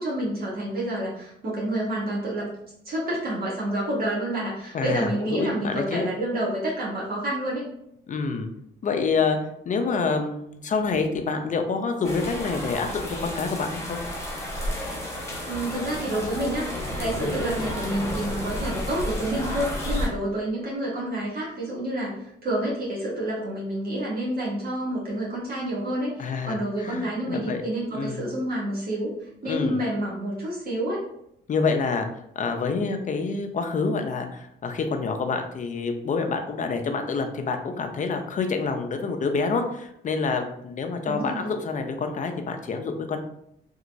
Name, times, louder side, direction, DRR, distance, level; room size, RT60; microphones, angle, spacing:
voice 1, 0.0-2.5 2.8-7.6 15.5-16.7 17.0-22.1 22.4-31.0 41.0-41.5, right 1 dB, 50° right, -6 dB, 1.0 m, -29 dB
voice 2, 4.7-6.1 8.1-8.5 8.8-9.4 9.7-14.0 17.2-17.4 26.2-27.6 27.9-28.3 29.4-29.8 31.5-32.1 32.4-43.2, left 4 dB, 40° left, 5 dB, 0.5 m, -27 dB
sound 1, 12.0-20.1, left 1 dB, 15° left, 0.9 m, -31 dB
2.9 x 2.8 x 2.5 m, 0.77 s
cardioid pair, 90°, 20 cm